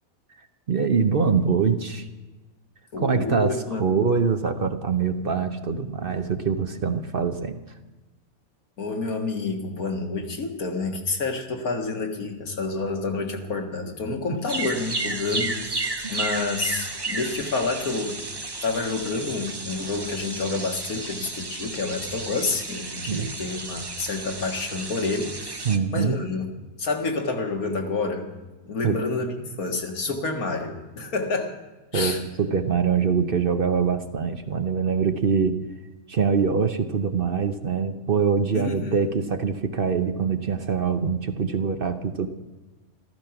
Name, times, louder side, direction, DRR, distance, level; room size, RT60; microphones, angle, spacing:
voice 1, 0.4-2.1 3.0-7.6 16.0-16.1 23.1-23.3 25.6-26.2 28.8-29.0 31.9-35.6 36.1-42.3, right 6 dB, 45° right, 8 dB, 0.9 m, -24 dB
voice 2, 2.9-3.9 8.8-18.2 18.6-25.6 25.9-26.5 26.8-28.3 28.7-31.6 31.9-32.2 38.5-39.0, left 3 dB, 85° left, 3 dB, 2.2 m, -29 dB
sound 1, 14.5-25.8, right 2 dB, 20° right, 0.8 m, -33 dB
14.5 x 14.0 x 5.9 m, 1.2 s
omnidirectional pair, 1.5 m